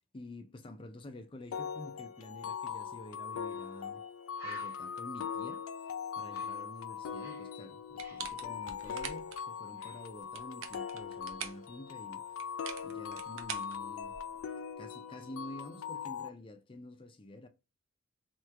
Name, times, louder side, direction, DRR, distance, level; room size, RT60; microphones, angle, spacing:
voice 1, 0.1-4.0 4.4-5.6 6.2-12.2 12.8-14.2 14.8-17.5, left 1 dB, 25° left, 0.4 m, -49 dB
sound 1, 1.5-16.3, left 7 dB, 90° left, 0.3 m, -41 dB
Bird, 3.5-3.6 4.0-4.1 4.3-7.5 7.8-9.5 9.8-10.1, right 1 dB, 15° right, 1.0 m, -52 dB
sound 2, 8.0-9.4 10.2-11.7 12.4-14.4, right 8 dB, 70° right, 0.5 m, -44 dB
3.0 x 2.3 x 3.3 m
head